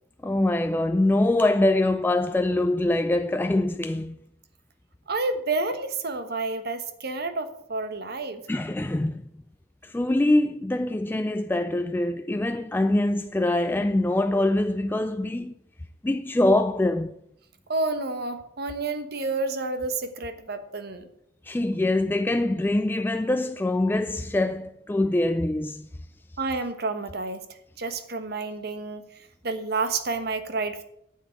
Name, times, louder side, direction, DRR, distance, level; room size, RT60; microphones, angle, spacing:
voice 1, 0.2-4.2 8.5-9.2 9.8-15.6 16.0-17.1 21.4-25.9, left 1 dB, 10° left, 0.3 m, -24 dB
voice 2, 5.1-8.4 17.7-21.1 26.4-27.4 27.8-29.0 29.4-30.8, right 3 dB, 55° right, 1.2 m, -29 dB
8.9 x 7.4 x 8.3 m
head